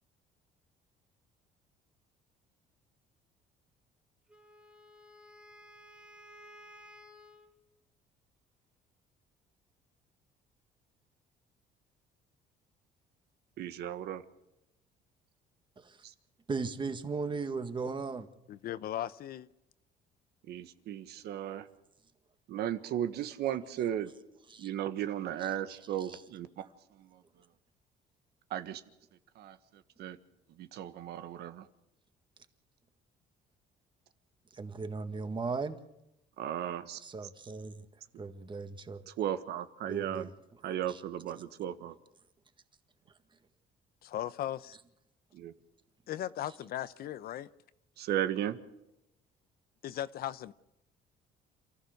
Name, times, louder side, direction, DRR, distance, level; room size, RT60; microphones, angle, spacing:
Wind instrument woodwind instrument, 4.3-7.5, equal, 5° right, 1.8 m, -55 dB
voice 1, 13.6-14.2 16.0-16.1 20.5-21.7 22.5-24.1 24.6-26.7 27.0-27.1 28.5-28.8 29.4-29.6 30.0-30.2 30.6-31.6 36.4-37.0 39.1-40.3 40.6-41.9 45.3-45.5 48.0-48.6, right 11 dB, 75° right, 1.5 m, -35 dB
voice 2, 16.5-18.3 24.5-24.7 25.4-25.8 26.1-26.2 34.5-35.8 37.0-37.9 38.2-39.1 39.8-40.3 40.9-41.0, right 4 dB, 30° right, 1.8 m, -37 dB
voice 3, 18.5-19.5 44.0-44.8 46.1-47.5 49.8-50.5, left 12 dB, 65° left, 0.8 m, -37 dB
28.0 x 14.5 x 6.6 m
cardioid pair, 110°, 17 cm